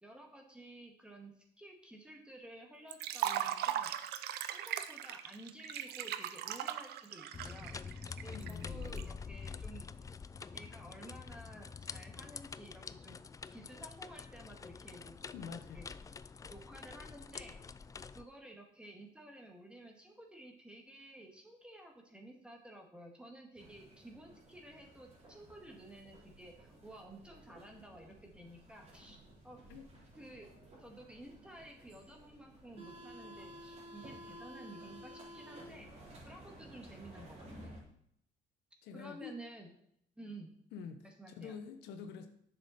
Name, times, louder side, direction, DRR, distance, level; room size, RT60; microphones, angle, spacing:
voice 1, 0.0-3.9 4.5-7.8 8.2-9.9 10.5-13.2 13.5-15.1 15.7-15.9 16.5-17.6 18.1-29.2 29.4-29.6 30.1-30.5 30.8-35.9 36.2-37.8 38.9-39.7 40.2-40.5 41.0-41.6, right 1 dB, 5° right, 1 dB, 2.0 m, -53 dB
Liquid, 2.9-9.0, right 11 dB, 75° right, 0.7 m, -38 dB
sound 1, 7.3-18.2, left 5 dB, 20° left, 0.3 m, -46 dB
voice 2, 8.3-9.0 15.3-15.8 29.7-29.9 38.8-39.3 40.7-42.3, left 6 dB, 80° left, 7 dB, 1.1 m, -47 dB
sound 2, 23.6-37.8, equal, 40° right, 4.1 m, -54 dB
10.0 x 7.0 x 4.2 m, 0.71 s
cardioid pair, 110°, 17 cm